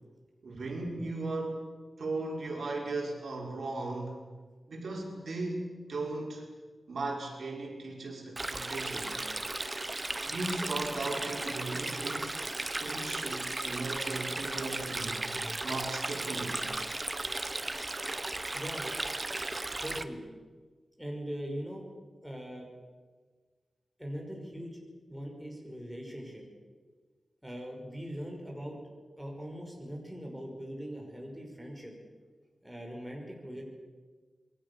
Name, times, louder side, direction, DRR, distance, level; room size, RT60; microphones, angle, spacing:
voice 1, 0.4-4.2 4.7-6.5 6.9-9.2 10.3-15.3 15.6-16.7, right 2 dB, 65° right, -1 dB, 5.7 m, -37 dB
Stream, 8.4-20.0, right 2 dB, 20° right, 1.1 m, -35 dB
voice 2, 18.5-18.9 19.8-20.3 21.0-21.9 22.2-22.7 24.0-24.8 25.1-26.4 27.4-28.8 29.2-31.9 32.6-33.6, equal, ahead, 0 dB, 5.5 m, -41 dB
27.0 x 22.5 x 7.1 m, 1.4 s
wide cardioid pair, 155°, 0 cm